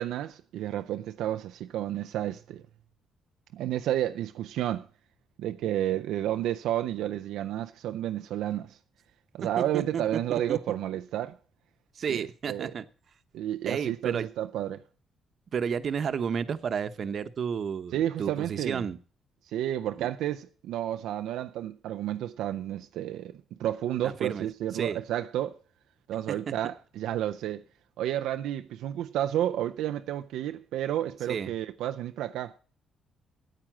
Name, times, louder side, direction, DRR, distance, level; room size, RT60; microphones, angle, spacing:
voice 1, 0.0-2.6 3.5-4.9 5.4-8.8 9.3-11.4 12.1-12.7 13.3-14.8 17.9-18.8 19.5-25.6 26.1-27.6 28.0-32.5, right 12 dB, 85° right, 0.5 m, -31 dB
voice 2, 9.6-10.6 11.9-12.9 13.7-14.3 15.5-19.0 20.0-20.1 24.0-24.5 24.7-25.0 26.3-26.5 31.3-31.5, right 7 dB, 55° right, 0.9 m, -32 dB
9.2 x 8.6 x 7.3 m
cardioid pair, 90°, 0 cm